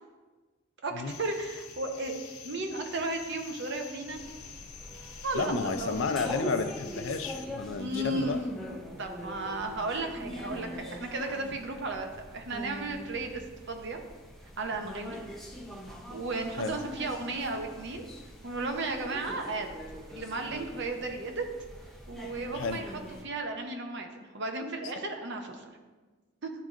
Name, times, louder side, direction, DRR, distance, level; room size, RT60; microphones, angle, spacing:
voice 1, 0.8-2.1 2.4-4.2 5.2-6.0 7.8-8.4 9.0-14.0 14.6-15.2 16.1-18.1 18.4-19.7 20.1-21.4 22.1-22.9 23.2-25.7 26.4-26.5, right 2 dB, 50° right, 4 dB, 0.7 m, -34 dB
sound 1, 1.1-7.5, left 6 dB, 85° left, 0.7 m, -47 dB
sound 2, 4.1-23.2, equal, ahead, 0.4 m, -43 dB
voice 2, 5.3-8.4 16.6-16.7 22.5-22.8, left 4 dB, 60° left, 8 dB, 0.4 m, -31 dB
10.5 x 3.8 x 2.5 m, 1.3 s
head